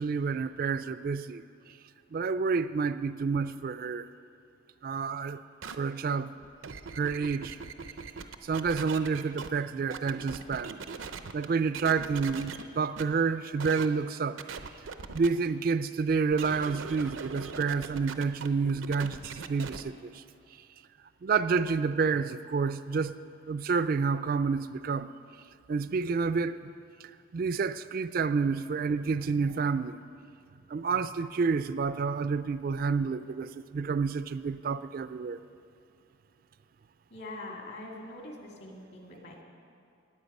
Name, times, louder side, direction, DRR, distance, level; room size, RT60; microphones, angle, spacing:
voice 1, 0.0-1.4 2.1-4.1 4.8-5.4 5.8-6.3 6.9-7.6 8.4-10.8 11.3-14.4 15.1-20.2 21.2-23.2 23.4-25.1 25.7-26.6 27.3-30.0 30.7-35.4, right 5 dB, 50° right, 13 dB, 0.3 m, -29 dB
sound 1, 5.6-5.8 6.4-9.5 9.9-11.5 11.7-12.6 13.0-13.1 13.6-13.9 14.4-15.3 16.3-19.8, right 5 dB, 90° right, 0.6 m, -40 dB
voice 2, 37.1-39.4, left 2 dB, 60° left, 0 dB, 2.1 m, -43 dB
18.0 x 8.5 x 5.4 m, 2.5 s
head